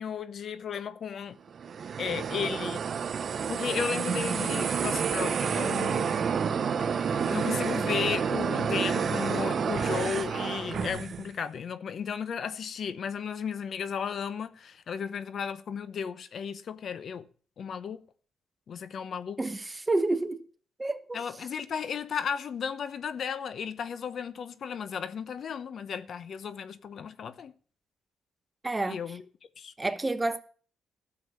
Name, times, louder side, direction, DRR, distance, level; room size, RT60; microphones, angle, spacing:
voice 1, 0.0-1.4 2.0-2.8 3.5-6.2 6.8-17.3 17.6-18.0 18.7-19.4 21.1-27.5 28.9-29.2 29.6-29.7, left 7 dB, 55° left, 0.8 m, -34 dB
sound 1, 1.5-11.3, right 7 dB, 50° right, 0.6 m, -29 dB
sound 2, 5.4-11.0, left 2 dB, 25° left, 2.4 m, -43 dB
voice 2, 19.4-20.4 20.8-21.2 28.6-29.0 29.8-30.4, right 2 dB, 20° right, 1.0 m, -29 dB
12.5 x 7.0 x 6.9 m
cardioid pair, 90°, 0 cm